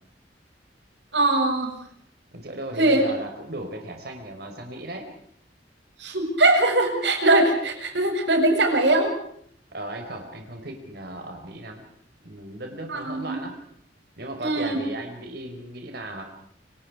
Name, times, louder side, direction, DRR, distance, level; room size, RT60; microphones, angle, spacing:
voice 1, 1.1-1.7 2.8-3.0 6.0-9.1 12.9-13.4 14.4-14.8, right 2 dB, 90° right, 4 dB, 7.8 m, -21 dB
voice 2, 2.3-5.1 9.7-11.8 12.2-13.5 14.2-16.3, right 1 dB, 65° right, 4 dB, 5.0 m, -36 dB
30.0 x 25.5 x 4.9 m, 0.68 s
head